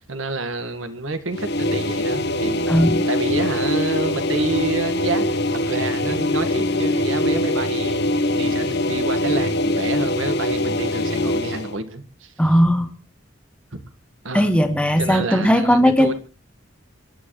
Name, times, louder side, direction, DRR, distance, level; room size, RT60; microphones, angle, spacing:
voice 1, 0.1-2.7 3.1-12.3 13.7-13.8 14.2-14.5 15.0-16.1, right 3 dB, 80° right, 1.8 m, -28 dB
sound 1, 1.3-11.7, left 1 dB, 55° left, 1.4 m, -22 dB
voice 2, 2.7-3.0 12.4-12.9 14.3-16.1, equal, 5° left, 1.7 m, -17 dB
26.0 x 11.5 x 3.3 m
head